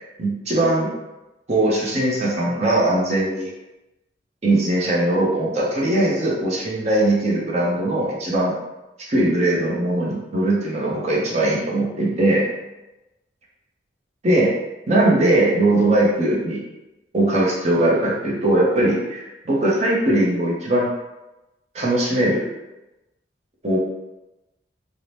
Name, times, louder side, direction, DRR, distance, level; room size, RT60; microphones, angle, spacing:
voice 1, 0.2-0.9 1.5-3.5 4.4-8.5 9.1-12.5 14.2-14.5 14.9-16.6 17.1-20.9 21.7-22.5 23.6-23.8, right 1 dB, 35° right, -5 dB, 0.6 m, -20 dB
2.7 x 2.0 x 3.2 m, 1.0 s
head